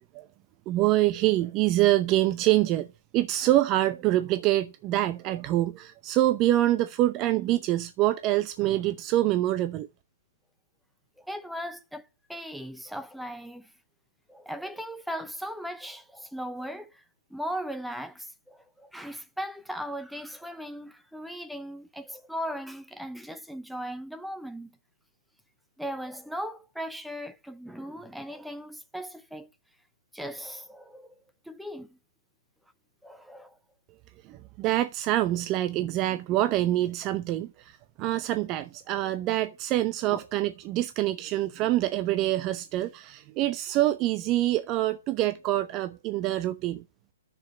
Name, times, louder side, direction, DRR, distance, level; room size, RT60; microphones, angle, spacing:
voice 1, 0.7-2.9 3.1-9.9 34.3-46.8, right 15 dB, 30° right, 0.7 m, -25 dB
voice 2, 11.2-13.7 14.3-17.0 17.3-24.8 25.8-29.5 30.1-31.1 31.5-32.0 33.0-33.6 40.1-40.2, equal, ahead, 0.8 m, -38 dB
10.5 x 7.0 x 6.8 m
hypercardioid pair, 130°, 0 cm